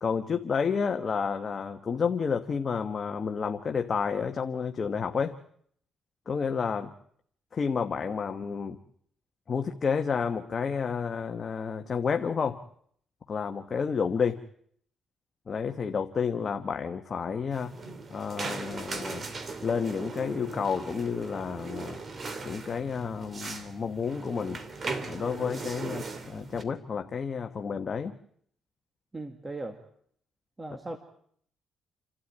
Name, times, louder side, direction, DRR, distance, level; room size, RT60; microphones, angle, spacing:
voice 1, 0.0-5.4 6.3-6.9 7.5-8.8 9.5-12.6 13.3-14.4 15.5-17.7 18.1-19.3 19.6-22.0 22.4-24.6 25.1-28.1, left 6 dB, 45° left, 5 dB, 1.2 m, -30 dB
sound 1, 17.5-26.6, right 3 dB, 40° right, 2.8 m, -38 dB
voice 2, 29.1-29.8 30.6-31.0, right 2 dB, 20° right, 6 dB, 2.1 m, -38 dB
29.0 x 13.0 x 8.8 m, 0.65 s
cardioid pair, 90°, 0 cm